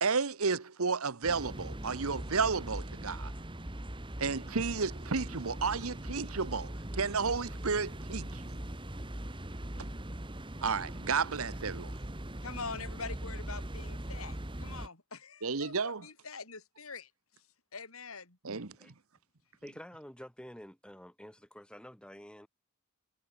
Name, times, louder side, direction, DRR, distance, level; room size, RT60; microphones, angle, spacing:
voice 1, 0.0-3.3 4.2-8.6 10.6-12.0 15.4-16.0 18.4-18.9, right 5 dB, 70° right, 1.1 m, -32 dB
sound 1, 1.2-14.9, right 1 dB, 25° right, 1.9 m, -41 dB
voice 2, 12.4-17.4 17.7-18.4, left 4 dB, 70° left, 4.8 m, -44 dB
voice 3, 19.6-22.5, equal, 5° left, 7.0 m, -49 dB
head